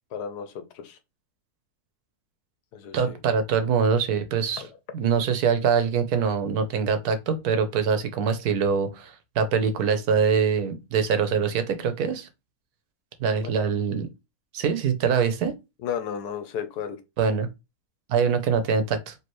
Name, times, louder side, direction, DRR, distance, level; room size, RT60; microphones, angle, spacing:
voice 1, 0.1-1.0 2.7-3.2 4.6-4.7 13.4-13.5 15.8-17.0, left 8 dB, 85° left, 1.3 m, -33 dB
voice 2, 2.9-4.6 4.9-12.3 13.2-14.1 14.5-15.5 17.2-17.5 18.1-19.1, right 6 dB, 75° right, 1.3 m, -24 dB
4.5 x 2.9 x 3.0 m
omnidirectional pair, 1.7 m